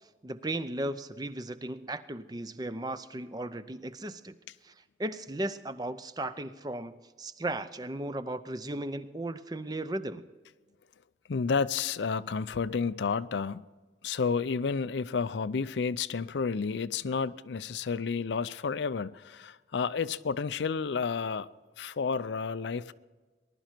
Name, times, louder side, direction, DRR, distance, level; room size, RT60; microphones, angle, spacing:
voice 1, 0.2-4.3 4.6-4.7 5.0-10.3, right 1 dB, 20° right, 0.6 m, -36 dB
voice 2, 11.3-13.6 14.0-21.5 21.8-22.9, left 5 dB, 75° left, 0.5 m, -31 dB
20.0 x 11.5 x 4.5 m
head